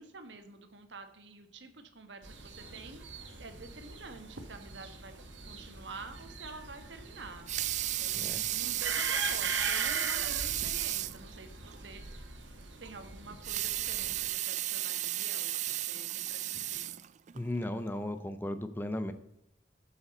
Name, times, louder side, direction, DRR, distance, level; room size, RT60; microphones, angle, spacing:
voice 1, 0.0-3.0 3.3-5.1 5.4-7.5 8.0-12.5 12.8-17.0, right 3 dB, 70° right, 8 dB, 1.3 m, -48 dB
sound 1, 2.2-14.3, right 4 dB, 85° right, 1.8 m, -41 dB
Water tap faucet / Sink (filling or washing) / Liquid, 7.3-11.2 11.7-11.8 12.1-12.2 13.3-17.4 18.0-18.1, right 14 dB, 40° right, 0.3 m, -34 dB
voice 2, 17.3-19.1, left 1 dB, 10° left, 9 dB, 0.6 m, -35 dB
8.2 x 7.2 x 5.3 m, 0.81 s
head